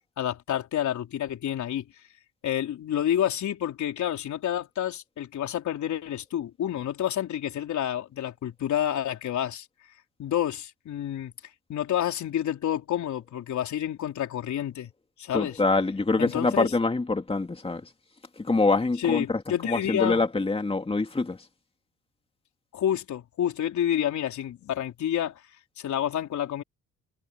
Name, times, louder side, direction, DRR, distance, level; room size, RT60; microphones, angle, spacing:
voice 1, 0.2-1.9 2.4-9.7 10.2-11.3 11.7-14.9 15.2-15.6 16.2-16.7 19.0-20.2 22.7-25.4 25.8-26.6, left 10 dB, 70° left, 4.0 m, -29 dB
voice 2, 15.3-17.8 18.4-21.4, left 3 dB, 20° left, 2.5 m, -25 dB
cardioid pair, 90°, 30 cm